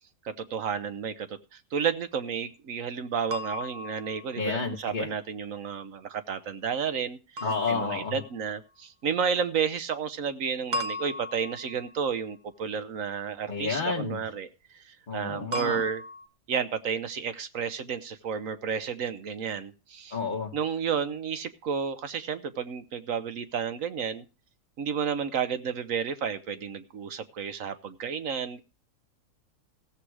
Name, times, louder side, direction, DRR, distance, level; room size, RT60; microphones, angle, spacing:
voice 1, 0.2-14.5 14.7-16.0 16.5-20.2 20.5-24.2 24.8-28.6, right 7 dB, 60° right, 11 dB, 1.2 m, -31 dB
sound 1, 3.3-4.8 7.4-8.5 10.7-12.1 15.5-16.3, left 1 dB, 40° right, 0.7 m, -37 dB
voice 2, 4.4-5.1 7.4-8.2 13.5-14.2 15.1-15.8 20.1-20.5, left 4 dB, 30° left, -2 dB, 1.2 m, -30 dB
16.0 x 7.5 x 4.8 m, 0.32 s
omnidirectional pair, 1.7 m